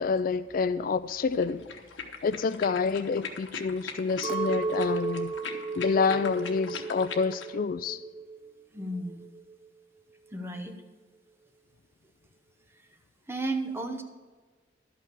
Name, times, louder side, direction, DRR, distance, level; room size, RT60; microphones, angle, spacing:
voice 1, 0.0-1.6 2.2-5.3 5.8-8.0, left 5 dB, 50° left, 0.3 m, -28 dB
sound 1, 1.3-7.5, left 5 dB, 80° left, 1.1 m, -41 dB
Chink clink, 4.2-8.6 8.8-9.7, right 4 dB, 35° right, 0.5 m, -34 dB
voice 2, 8.7-9.3 10.3-10.8 12.7-12.9 13.3-14.0, right 2 dB, 15° right, 1.0 m, -34 dB
12.0 x 5.9 x 6.9 m
head